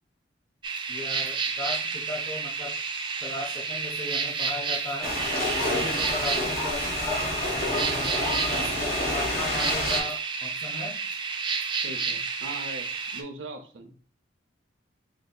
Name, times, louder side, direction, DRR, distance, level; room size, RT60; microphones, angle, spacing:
sound 1, 0.6-13.2, right 5 dB, 25° right, 0.4 m, -30 dB
voice 1, 0.9-2.7 3.2-5.1 5.5-8.7 9.1-10.9, left 1 dB, 25° left, -2 dB, 0.6 m, -37 dB
sound 2, 5.0-10.0, left 2 dB, 50° left, 1.3 m, -29 dB
voice 2, 5.6-6.0 11.8-13.9, right 2 dB, 90° right, 5 dB, 0.7 m, -40 dB
5.4 x 2.7 x 2.3 m, 0.44 s
head